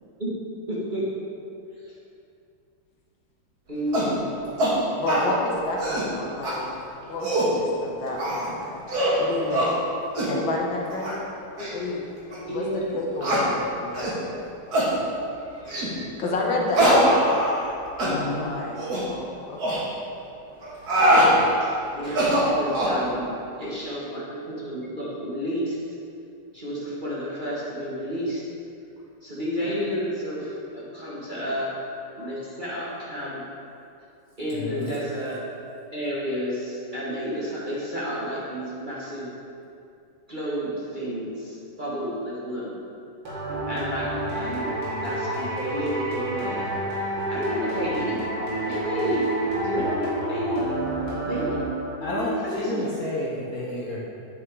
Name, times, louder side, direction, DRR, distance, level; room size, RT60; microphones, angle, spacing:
voice 1, 0.7-1.0 3.7-4.4 12.5-12.8 21.6-25.8 26.5-28.4 29.2-31.7 32.1-33.4 34.4-35.4 35.9-39.3 40.3-42.7 43.3-43.4 43.7-44.1 44.3-46.7 47.3-48.2 48.6-49.3 49.6-50.6 51.2-51.6 52.0-53.1, equal, 25° right, -8 dB, 1.4 m, -31 dB
sound 1, 3.9-4.1 4.6-4.7 5.1-5.3 5.7-6.1 6.4-6.5 7.0-7.5 8.2-8.5 8.9-9.2 9.5-9.7 10.2-10.3 10.9-11.1 11.6-11.7 12.3-12.4 13.2-13.4 13.9-14.2 14.7-14.9 15.7-15.9 16.7-17.7 18.0-18.1 18.8-19.0 19.6-19.8 20.6-21.3 22.0-23.0, equal, 50° right, 2.3 m, -22 dB
voice 2, 5.0-6.7 7.1-8.7 9.2-9.7 10.2-11.3 11.7-12.1 12.5-14.2 15.4-15.9 16.2-17.5 18.0-19.8 29.6-29.7 32.2-32.3 48.7-48.8, left 2 dB, 70° left, -1 dB, 1.8 m, -30 dB
voice 3, 18.0-18.5 34.5-34.9 52.0-52.3 52.6-54.0, left 2 dB, 50° left, -5 dB, 1.4 m, -30 dB
sound 2, 43.3-52.2, right 1 dB, 85° right, 3.3 m, -29 dB
9.3 x 6.2 x 4.7 m, 2.6 s
omnidirectional pair, 2.3 m